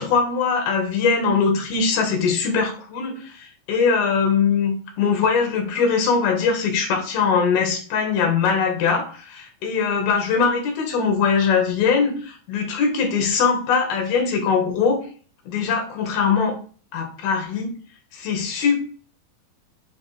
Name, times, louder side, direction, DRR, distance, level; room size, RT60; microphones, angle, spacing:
voice 1, 0.0-15.0 15.5-16.6 16.9-17.7 18.1-18.8, left 5 dB, 85° left, 3 dB, 3.6 m, -21 dB
9.9 x 3.4 x 3.4 m, 0.40 s
omnidirectional pair, 4.3 m